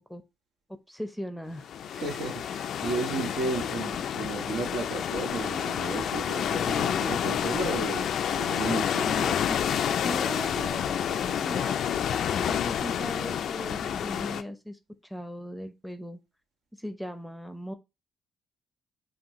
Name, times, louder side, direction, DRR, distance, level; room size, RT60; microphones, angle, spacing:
voice 1, 0.9-1.7 9.0-9.6 10.0-11.7 12.4-16.2 16.8-17.7, equal, ahead, 0.6 m, -38 dB
sound 1, 1.6-14.4, left 9 dB, 70° left, 0.3 m, -29 dB
voice 2, 2.0-9.4, right 3 dB, 85° right, 1.7 m, -33 dB
5.8 x 2.4 x 2.9 m
cardioid pair, 90°, 0 cm